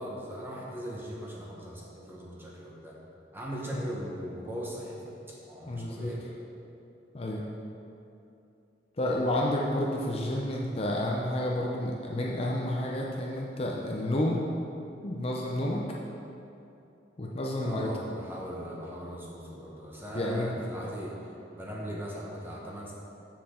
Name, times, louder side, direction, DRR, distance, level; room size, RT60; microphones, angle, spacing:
voice 1, 0.0-3.0 3.3-5.1 5.5-6.2 17.6-22.9, equal, 10° right, -4 dB, 1.1 m, -39 dB
voice 2, 5.7-6.1 7.1-7.5 9.0-14.4 15.0-15.8 17.2-17.9 20.1-20.5 20.8-20.9, left 1 dB, 30° left, -2 dB, 0.6 m, -30 dB
7.5 x 6.9 x 3.7 m, 2.8 s
head